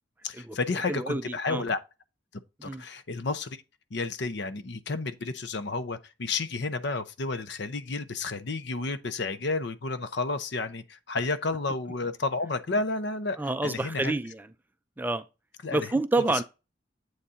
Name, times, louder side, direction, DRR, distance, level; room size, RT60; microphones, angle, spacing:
voice 1, 0.2-1.8 2.6-3.6 3.9-14.2 15.6-15.9, left 3 dB, 60° left, 0.7 m, -31 dB
voice 2, 0.9-1.2 1.5-1.6 2.6-2.8 13.4-14.4 15.0-15.2 15.7-16.4, right 2 dB, 10° right, 0.4 m, -28 dB
8.0 x 4.2 x 3.6 m
head